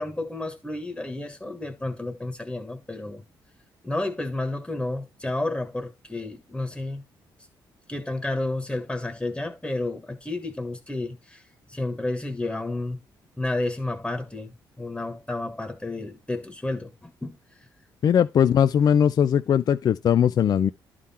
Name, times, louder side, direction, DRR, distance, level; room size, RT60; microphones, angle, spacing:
voice 1, 0.0-3.2 3.8-7.0 7.9-11.4 11.7-13.0 13.4-17.4, left 2 dB, 10° left, 1.4 m, -31 dB
voice 2, 18.0-20.7, left 8 dB, 55° left, 0.4 m, -20 dB
11.0 x 3.7 x 4.3 m
cardioid pair, 80°, 8 cm